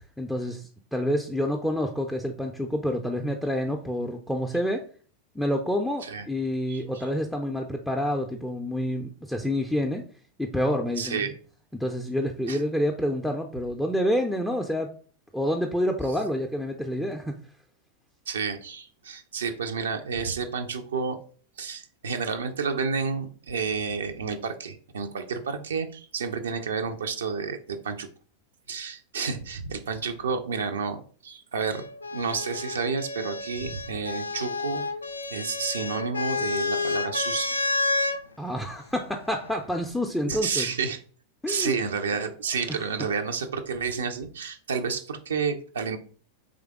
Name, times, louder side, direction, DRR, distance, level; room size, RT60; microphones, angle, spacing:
voice 1, 0.2-4.8 5.3-10.0 10.4-11.3 11.7-14.9 15.3-17.4 38.4-40.7 41.4-41.7 42.7-42.8, equal, 5° left, 3 dB, 0.4 m, -28 dB
voice 2, 11.0-11.3 12.5-12.6 18.3-21.2 21.6-28.1 28.7-31.8 32.1-34.8 35.3-37.6 40.3-41.0 41.5-46.0, right 5 dB, 65° right, 7 dB, 0.5 m, -30 dB
sound 1, 31.6-38.2 39.3-39.9, left 3 dB, 80° left, 0.3 m, -30 dB
3.7 x 3.3 x 3.5 m, 0.43 s
figure-of-eight pair, 90°, 0 cm